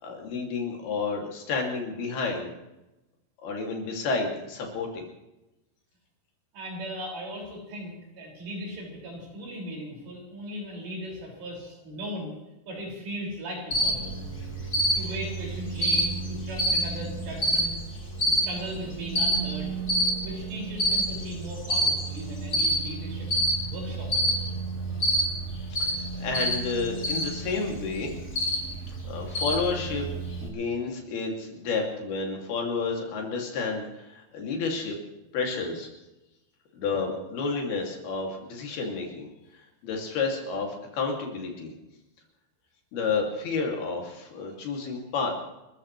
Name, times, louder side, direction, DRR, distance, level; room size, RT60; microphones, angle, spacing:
voice 1, 0.0-2.5 3.4-5.0 25.7-25.9 26.2-28.1 29.0-30.0 30.4-35.0 35.3-35.9 36.8-39.3 39.8-41.7 42.9-45.3, left 4 dB, 65° left, 0 dB, 4.6 m, -30 dB
voice 2, 6.5-12.4 12.7-14.2 15.0-17.8 18.3-19.7 20.2-23.3 23.6-24.6, equal, 85° right, -2 dB, 8.2 m, -38 dB
Cricket, 13.7-30.5, right 1 dB, 20° left, 3.2 m, -28 dB
30.0 x 14.5 x 3.3 m, 0.97 s
omnidirectional pair, 4.8 m